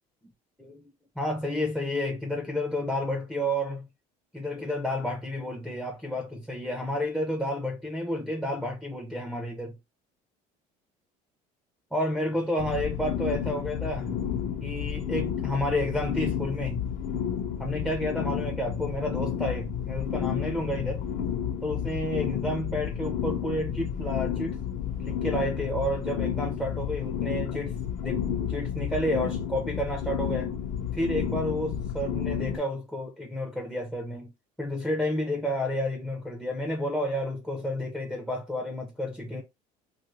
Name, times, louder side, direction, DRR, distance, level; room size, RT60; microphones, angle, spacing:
voice 1, 1.2-3.9 4.3-9.8 11.9-14.2 14.6-16.8 17.6-21.0 21.6-24.6 25.0-30.5 30.9-34.3 34.6-39.4, left 1 dB, ahead, 0.5 m, -30 dB
sound 1, 12.6-32.6, left 8 dB, 55° left, 0.6 m, -31 dB
2.9 x 2.5 x 3.0 m
cardioid pair, 155°, 16 cm